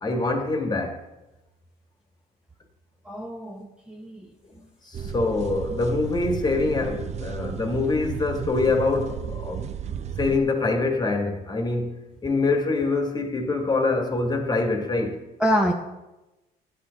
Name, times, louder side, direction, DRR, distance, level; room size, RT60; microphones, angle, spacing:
voice 1, 0.0-1.0 4.8-9.6 10.2-15.2, left 3 dB, 25° left, 1.4 m, -25 dB
voice 2, 3.0-4.3 15.4-15.7, equal, 5° right, 0.8 m, -25 dB
sound 1, 4.9-10.4, right 7 dB, 40° right, 0.6 m, -33 dB
11.5 x 7.8 x 3.9 m
cardioid pair, 110°, 17 cm